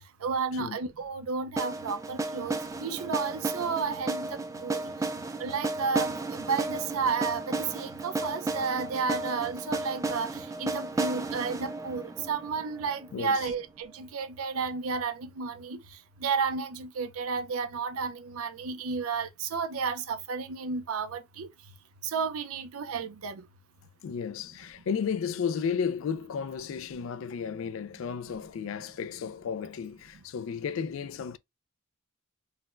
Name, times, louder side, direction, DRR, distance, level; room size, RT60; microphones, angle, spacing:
voice 1, 0.2-4.8 5.4-6.1 6.5-10.3 10.6-15.8 16.2-21.5 22.1-23.4, right 5 dB, 85° right, 0.5 m, -32 dB
sound 1, 1.6-13.5, right 3 dB, 15° right, 0.3 m, -34 dB
voice 2, 13.1-13.5 24.0-31.4, left 6 dB, 65° left, 0.3 m, -33 dB
3.9 x 2.2 x 2.4 m
head